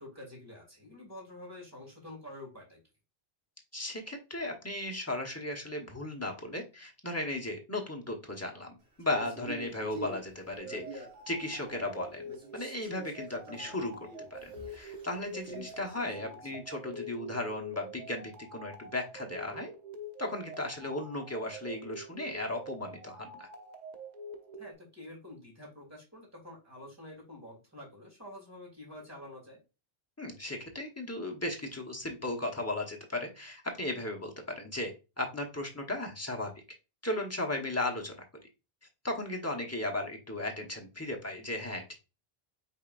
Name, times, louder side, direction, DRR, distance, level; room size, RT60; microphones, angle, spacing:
voice 1, 0.0-2.8 16.4-16.6 24.6-29.6, left 1 dB, 15° right, -2 dB, 2.5 m, -48 dB
voice 2, 3.7-19.7 20.2-23.5 30.2-36.6 37.0-38.2 39.0-41.9, left 1 dB, 15° left, 1 dB, 1.1 m, -36 dB
Male speech man speaking, 9.0-12.0 12.3-16.4, right 1 dB, 80° right, 1.9 m, -47 dB
sound 1, 10.6-24.7, right 1 dB, 45° right, 0.8 m, -46 dB
5.4 x 3.8 x 2.5 m, 0.29 s
omnidirectional pair, 1.0 m